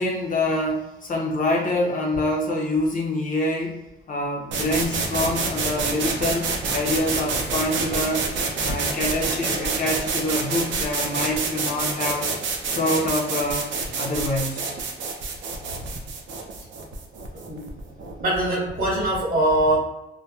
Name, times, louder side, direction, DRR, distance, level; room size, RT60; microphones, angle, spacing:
voice 1, 0.0-3.8 4.1-8.2 8.6-12.3 12.7-13.7 14.0-14.7, left 1 dB, 40° left, -1 dB, 0.6 m, -26 dB
sound 1, 4.5-18.2, right 4 dB, 70° right, 0.5 m, -28 dB
voice 2, 17.5-17.8 18.2-19.8, right 1 dB, 45° right, -4 dB, 1.3 m, -22 dB
2.7 x 2.2 x 2.3 m, 0.93 s
cardioid pair, 90°, 20 cm